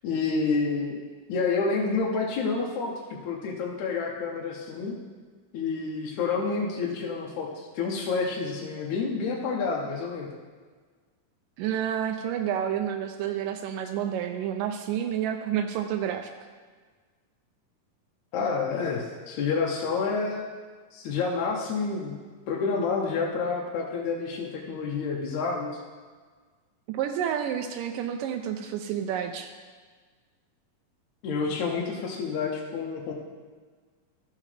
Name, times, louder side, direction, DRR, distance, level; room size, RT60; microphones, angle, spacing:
voice 1, 0.0-1.0 1.3-2.9 3.2-5.0 5.5-10.3 18.3-20.4 20.9-22.2 22.5-25.8 31.2-33.1, left 4 dB, 70° left, -2 dB, 2.1 m, -29 dB
voice 2, 11.6-16.3 26.9-29.5, right 9 dB, 85° right, 5 dB, 2.2 m, -29 dB
13.0 x 7.4 x 3.3 m, 1.5 s
omnidirectional pair, 3.8 m